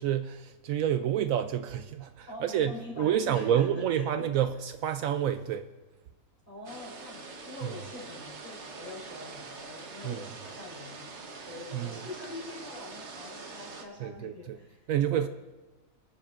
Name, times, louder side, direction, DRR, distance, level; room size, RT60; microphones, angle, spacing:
voice 1, 0.0-5.7 7.6-7.7 10.0-10.2 11.7-12.0 14.0-14.6 14.9-15.3, right 10 dB, 75° right, 0.9 m, -29 dB
voice 2, 2.3-4.4 6.5-11.1 11.4-15.3, left 2 dB, 35° left, 4.9 m, -44 dB
sound 1, 6.6-13.8, right 4 dB, 55° right, 1.4 m, -44 dB
29.0 x 9.8 x 2.5 m
omnidirectional pair, 1.5 m